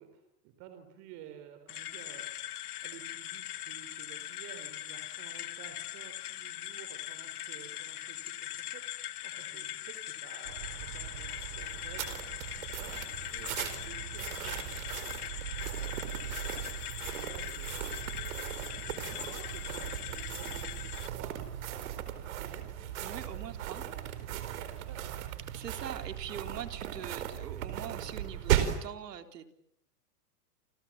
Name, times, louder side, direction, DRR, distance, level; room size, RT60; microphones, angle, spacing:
voice 1, 0.0-2.3 2.8-12.2 12.6-17.9 18.3-18.5 18.8-21.4 22.1-22.8 23.5-25.2, right 9 dB, 35° right, 7 dB, 3.9 m, -53 dB
sound 1, 1.7-21.1, left 13 dB, 70° left, 1.6 m, -41 dB
sound 2, 10.4-28.9, right 11 dB, 60° right, 4.5 m, -37 dB
voice 2, 23.0-23.8 25.5-29.5, right 9 dB, 80° right, 7 dB, 3.8 m, -43 dB
29.5 x 27.5 x 7.4 m, 0.72 s
hypercardioid pair, 155°, 47 cm